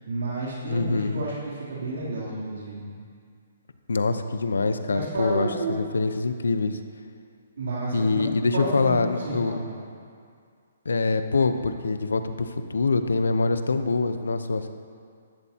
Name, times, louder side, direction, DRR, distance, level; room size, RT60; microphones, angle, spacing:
voice 1, 0.1-2.9 4.9-5.8 7.6-8.2 8.5-8.9 9.2-9.8, right 2 dB, 80° right, -6 dB, 3.2 m, -31 dB
voice 2, 0.7-1.2 3.9-6.8 7.9-9.6 10.8-14.7, left 3 dB, 90° left, 9 dB, 0.8 m, -24 dB
14.0 x 12.0 x 2.9 m, 2.2 s
hypercardioid pair, 150°, 0 cm